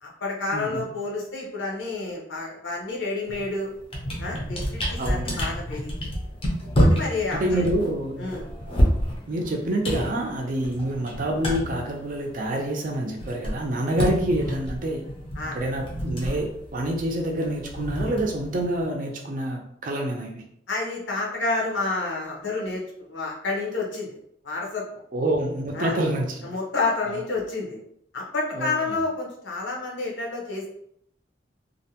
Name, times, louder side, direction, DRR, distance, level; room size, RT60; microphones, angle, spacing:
voice 1, 0.0-3.7 4.2-5.9 6.7-7.6 8.2-8.5 15.4-15.6 20.7-22.8 23.1-24.1 24.4-24.9 25.7-26.0 26.4-27.8 28.1-30.7, left 3 dB, 80° left, -2 dB, 0.8 m, -29 dB
voice 2, 0.5-0.9 5.0-5.4 7.3-8.3 9.3-15.1 15.5-20.4 25.1-26.5 27.1-27.2 28.5-29.0, right 1 dB, 45° right, 2 dB, 0.5 m, -27 dB
sound 1, 3.3-3.5 3.8-12.7 12.9-18.9, equal, 30° left, 0.5 m, -28 dB
2.5 x 2.1 x 2.8 m, 0.72 s
head